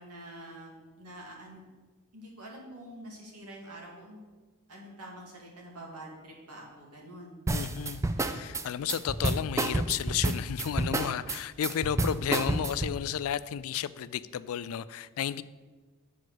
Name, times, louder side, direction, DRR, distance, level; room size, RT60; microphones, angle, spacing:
voice 1, 0.0-1.6 2.1-4.2 4.7-7.4 7.7-7.9, right 1 dB, 90° right, 2.3 m, -46 dB
voice 2, 7.5-15.4, left 9 dB, 70° left, 0.3 m, -33 dB
sound 1, 7.5-13.0, right 2 dB, 15° right, 0.3 m, -29 dB
8.5 x 4.8 x 6.2 m
head